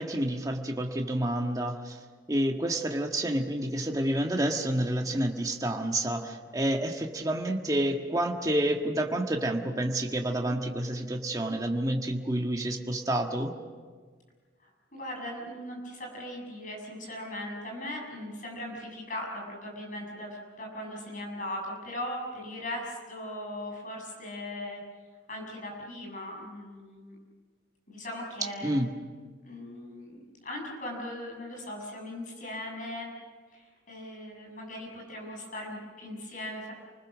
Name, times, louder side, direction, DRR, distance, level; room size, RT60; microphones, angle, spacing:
voice 1, 0.0-1.9 2.3-13.5 28.6-28.9, right 1 dB, 20° right, 2 dB, 1.6 m, -29 dB
voice 2, 14.6-24.8 25.3-27.2 27.9-28.8 29.4-33.1 33.5-36.7, left 1 dB, 45° left, 0 dB, 7.4 m, -39 dB
29.0 x 20.5 x 6.4 m, 1.5 s
head